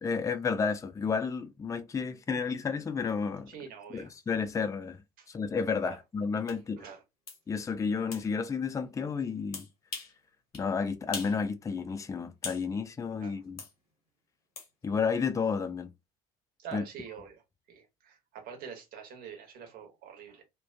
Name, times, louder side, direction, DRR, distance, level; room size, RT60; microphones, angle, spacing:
voice 1, 0.0-3.5 3.9-5.0 5.3-6.8 7.5-9.7 10.5-13.6 14.8-15.9 16.7-16.8, left 5 dB, 15° left, 0.4 m, -31 dB
voice 2, 3.5-4.1 5.2-5.3 5.8-6.0 6.8-7.0 13.2-13.4 16.6-17.4 17.7-20.4, right 7 dB, 50° right, 1.0 m, -45 dB
sound 1, 6.5-6.6 7.3-7.4 8.1-8.3 9.5-10.2 10.5-10.7 11.1-11.4 11.7-12.7 13.6-13.7 14.6-14.7, left 4 dB, 80° left, 0.9 m, -41 dB
2.4 x 2.2 x 2.4 m
figure-of-eight pair, 60°, 19 cm